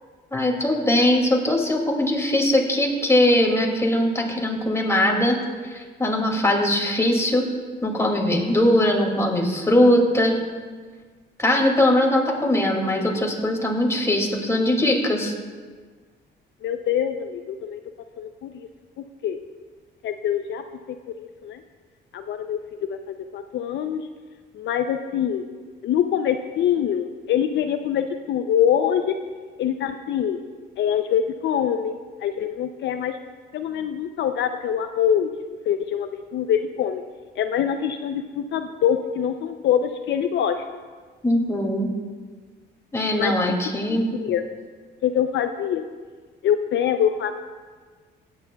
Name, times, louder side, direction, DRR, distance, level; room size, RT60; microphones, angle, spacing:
voice 1, 0.3-5.4 5.6-7.5 7.8-10.4 11.4-15.3 41.2-41.9 42.9-44.1, left 1 dB, 15° left, 1 dB, 2.3 m, -21 dB
voice 2, 16.6-17.8 18.2-18.7 19.0-19.4 20.0-21.6 22.1-22.6 22.9-24.1 24.5-25.4 25.8-29.2 29.6-30.4 30.8-33.2 33.5-35.3 35.7-37.0 37.4-40.6 43.2-43.3 43.9-44.5 45.0-45.8 46.4-47.3, left 9 dB, 70° left, 7 dB, 0.5 m, -24 dB
17.5 x 9.6 x 2.3 m, 1.5 s
cardioid pair, 90°, 20 cm